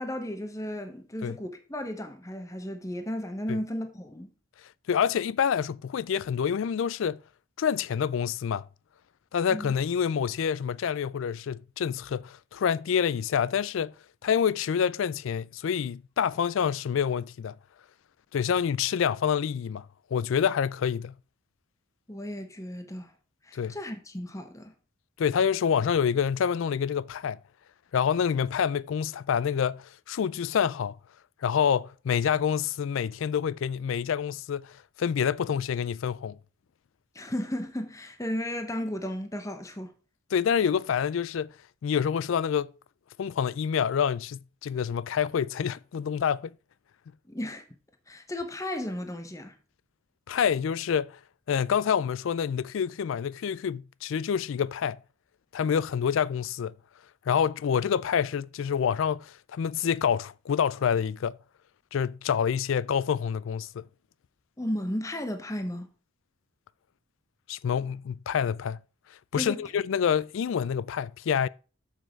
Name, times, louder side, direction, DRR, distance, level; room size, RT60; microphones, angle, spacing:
voice 1, 0.0-4.3 9.5-9.7 22.1-23.1 23.4-24.7 37.1-39.9 47.3-47.7 48.1-49.5 64.6-65.9 69.4-69.6, left 1 dB, 15° left, 0.9 m, -34 dB
voice 2, 4.9-7.2 7.6-8.7 9.3-13.9 14.2-17.6 18.3-19.9 20.1-21.1 23.5-23.7 25.2-27.4 27.9-31.0 31.4-36.4 40.3-41.5 41.8-42.7 43.2-46.5 50.3-51.2 51.5-55.0 55.5-56.7 57.3-61.4 61.9-63.8 67.5-68.8 69.3-71.5, left 7 dB, 65° left, 0.3 m, -27 dB
7.0 x 6.3 x 4.6 m
head